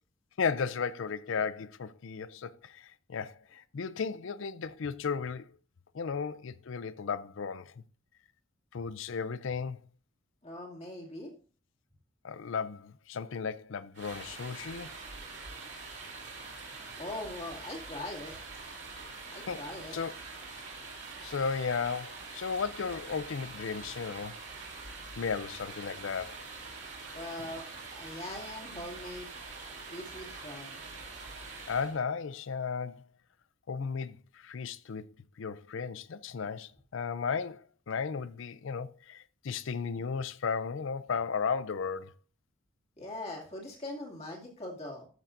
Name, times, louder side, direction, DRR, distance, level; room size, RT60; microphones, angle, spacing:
voice 1, 0.4-5.5 5.9-7.7 8.7-9.8 12.2-14.9 19.5-19.6 19.9-20.1 21.2-24.4 25.2-26.4 31.7-33.1 33.7-42.1, left 5 dB, 65° left, 0.4 m, -35 dB
voice 2, 10.4-11.3 17.0-18.3 19.3-19.9 27.1-27.6 27.9-29.3 29.9-30.9 43.0-45.1, left 1 dB, 30° left, 2.3 m, -41 dB
sound 1, 13.9-32.0, right 4 dB, 55° right, 3.1 m, -45 dB
13.0 x 6.8 x 2.6 m
head